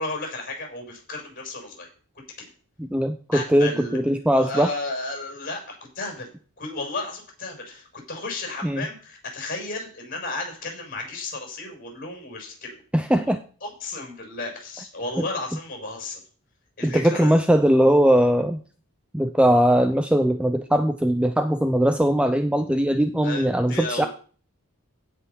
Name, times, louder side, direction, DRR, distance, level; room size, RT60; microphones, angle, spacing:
voice 1, 0.0-2.5 3.3-4.0 4.3-6.3 6.6-12.7 13.6-16.2 16.8-17.4 23.2-24.1, left 2 dB, 40° left, 2 dB, 6.9 m, -33 dB
voice 2, 2.9-4.7 8.6-8.9 12.9-13.4 16.8-18.6 19.1-24.1, equal, 5° right, 8 dB, 0.4 m, -20 dB
16.5 x 5.6 x 5.7 m, 0.42 s
head